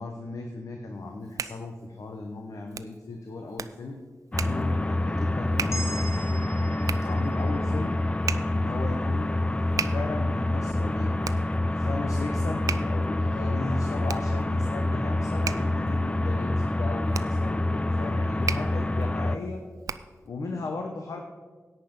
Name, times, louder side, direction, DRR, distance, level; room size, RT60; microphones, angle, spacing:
voice 1, 0.0-4.0 4.4-6.5 7.0-8.0 8.5-9.4 9.9-11.2 11.7-19.6 20.3-21.3, left 3 dB, 80° left, 3 dB, 1.0 m, -36 dB
Hands, 1.0-20.3, right 7 dB, 90° right, 0.4 m, -38 dB
sound 1, 4.3-19.4, left 1 dB, 20° left, 0.5 m, -27 dB
sound 2, 5.7-10.0, equal, 55° left, 1.3 m, -43 dB
11.0 x 8.4 x 5.3 m, 1.4 s
cardioid pair, 65°, 6 cm